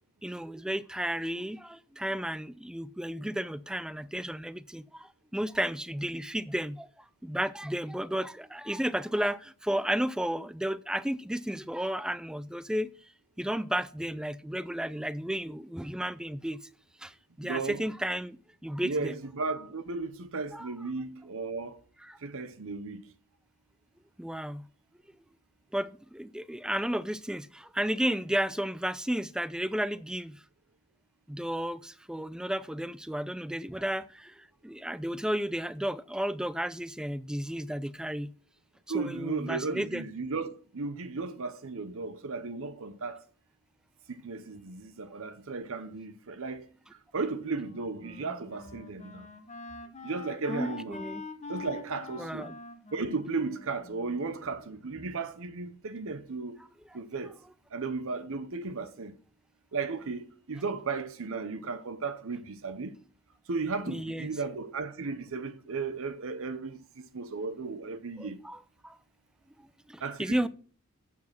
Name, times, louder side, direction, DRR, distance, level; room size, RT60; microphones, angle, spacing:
voice 1, 0.2-6.9 7.2-12.9 13.4-16.6 17.0-19.2 20.5-20.7 22.0-22.2 24.2-24.7 25.7-30.4 31.3-38.3 38.9-40.1 50.5-51.2 52.2-52.5 63.9-64.3 68.2-69.0 69.9-70.5, right 1 dB, 5° right, 0.3 m, -33 dB
voice 2, 17.4-17.8 18.8-21.8 22.2-23.0 38.9-43.2 44.1-46.7 47.1-49.3 50.0-51.0 51.5-52.5 52.9-56.6 56.9-57.3 57.7-59.1 59.7-62.9 63.5-68.4 70.0-70.5, right 4 dB, 65° right, 0.8 m, -35 dB
Wind instrument woodwind instrument, 47.5-54.7, left 3 dB, 30° left, 1.1 m, -45 dB
8.3 x 7.3 x 6.0 m
head